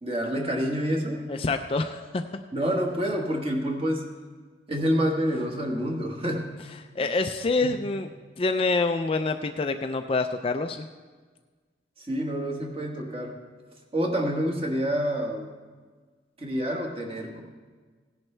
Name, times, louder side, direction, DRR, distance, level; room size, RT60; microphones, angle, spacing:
voice 1, 0.0-1.3 2.5-4.1 4.7-6.5 7.0-7.1 7.6-7.7 12.0-13.4 13.9-15.5 16.4-17.4, equal, 30° right, 1 dB, 1.5 m, -28 dB
voice 2, 1.3-2.2 7.0-8.1 8.4-10.9, left 3 dB, 30° left, 7 dB, 0.4 m, -26 dB
17.5 x 10.5 x 3.3 m, 1.4 s
head